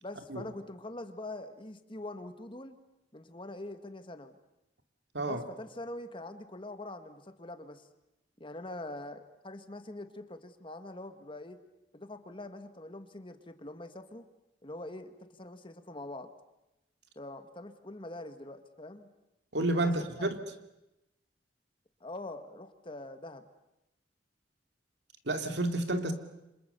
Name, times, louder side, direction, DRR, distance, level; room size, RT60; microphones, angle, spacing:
voice 1, 0.0-2.8 3.1-4.4 5.2-7.8 8.4-11.6 11.9-14.3 14.6-16.3 17.2-19.1 19.8-20.3 22.0-23.4, left 2 dB, 30° left, 9 dB, 1.7 m, -44 dB
voice 2, 19.5-20.4 25.3-26.1, right 2 dB, 65° right, 7 dB, 2.6 m, -30 dB
29.5 x 26.0 x 6.9 m, 0.92 s
head